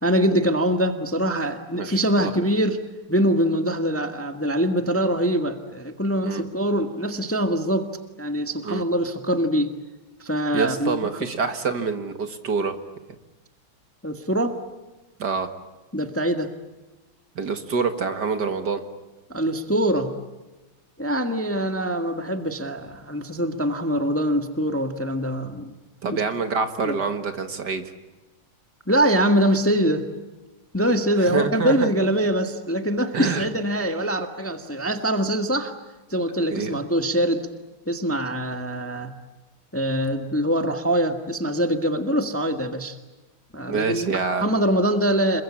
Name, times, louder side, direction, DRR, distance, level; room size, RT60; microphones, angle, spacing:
voice 1, 0.0-2.8 3.1-7.9 8.2-9.8 10.2-11.2 14.0-14.6 15.9-16.5 19.3-20.1 21.0-25.7 26.1-26.2 26.8-27.0 28.9-30.1 30.7-35.7 36.1-37.5 37.9-39.1 39.7-43.0 43.5-44.1 44.4-45.4, equal, 5° left, 7 dB, 1.4 m, -23 dB
voice 2, 1.8-2.3 6.2-6.4 8.6-8.8 10.5-12.8 15.2-15.5 17.4-18.8 26.0-27.8 31.2-31.9 33.1-33.5 36.5-36.7 43.7-44.5, right 5 dB, 55° right, 8 dB, 2.2 m, -26 dB
28.0 x 23.0 x 8.6 m, 1.1 s
omnidirectional pair, 2.3 m